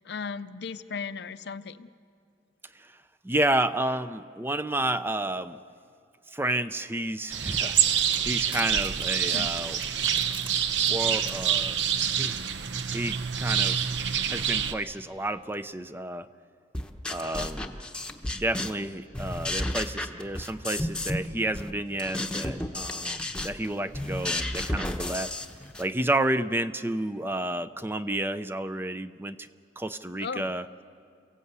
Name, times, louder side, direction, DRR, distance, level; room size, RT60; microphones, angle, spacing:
voice 1, 0.0-1.9 9.3-9.5 30.2-30.6, left 5 dB, 65° left, 12 dB, 0.6 m, -36 dB
voice 2, 3.2-5.6 6.3-9.8 10.9-11.8 12.2-12.4 12.9-13.8 14.3-16.3 17.1-17.8 18.3-25.3 25.8-29.4 29.8-30.7, right 1 dB, 10° right, 12 dB, 0.5 m, -30 dB
sound 1, 7.3-14.7, right 8 dB, 75° right, 0.8 m, -26 dB
sound 2, 7.8-10.5 10.8-11.3, right 3 dB, 30° right, 1.7 m, -42 dB
sound 3, 16.7-18.9 19.1-21.3 21.5-25.9, left 1 dB, 5° left, 1.0 m, -32 dB
28.0 x 16.5 x 8.1 m, 2.3 s
head